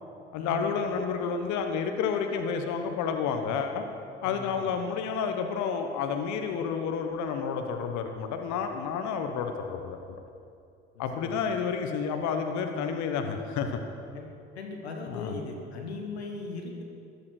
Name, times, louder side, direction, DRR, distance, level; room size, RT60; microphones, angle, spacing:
voice 1, 0.3-3.9 4.2-10.2 11.0-13.8 15.1-15.3, left 6 dB, 65° left, 5 dB, 1.2 m, -30 dB
voice 2, 4.2-4.7 10.9-11.4 14.1-14.2 14.5-16.8, left 3 dB, 90° left, 2 dB, 1.4 m, -38 dB
14.5 x 11.5 x 6.4 m, 2.5 s
hypercardioid pair, 50°, 31 cm